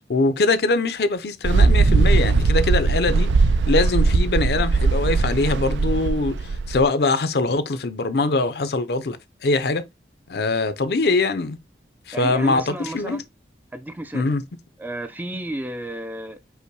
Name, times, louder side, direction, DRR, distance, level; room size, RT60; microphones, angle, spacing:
voice 1, 0.1-3.3 3.7-6.4 6.7-9.2 9.4-9.8 10.3-11.6 12.1-13.2 14.1-14.4, left 3 dB, 65° left, 0.5 m, -22 dB
Mechanical fan, 1.4-6.8, right 3 dB, 90° right, 0.4 m, -19 dB
voice 2, 12.1-13.3 13.7-14.3 14.8-16.4, right 1 dB, 10° right, 0.4 m, -32 dB
5.5 x 2.1 x 4.6 m
head